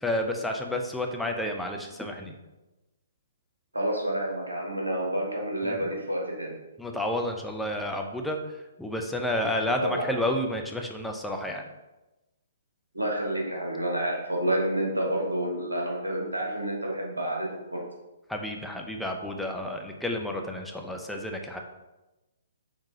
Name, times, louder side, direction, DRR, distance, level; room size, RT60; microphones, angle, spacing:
voice 1, 0.0-2.3 5.6-5.9 6.8-8.4 8.8-11.6 18.3-21.6, left 1 dB, 5° left, 2 dB, 0.5 m, -30 dB
voice 2, 3.7-6.5 9.8-10.0 12.9-17.8, right 1 dB, 90° right, -1 dB, 1.3 m, -29 dB
4.8 x 3.6 x 2.7 m, 1.0 s
figure-of-eight pair, 125°, 0 cm